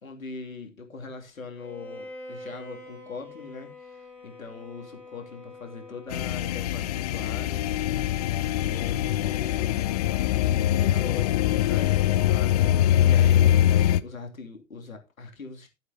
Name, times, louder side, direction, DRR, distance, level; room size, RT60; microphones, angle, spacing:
voice 1, 0.0-7.6 8.7-9.7 10.8-12.7 13.0-15.7, left 4 dB, 80° left, 2.9 m, -41 dB
Bowed string instrument, 1.5-6.6, left 1 dB, 5° left, 3.2 m, -45 dB
sound 1, 6.1-14.0, left 12 dB, 30° left, 0.5 m, -23 dB
14.5 x 8.0 x 2.9 m
figure-of-eight pair, 115°, 40 cm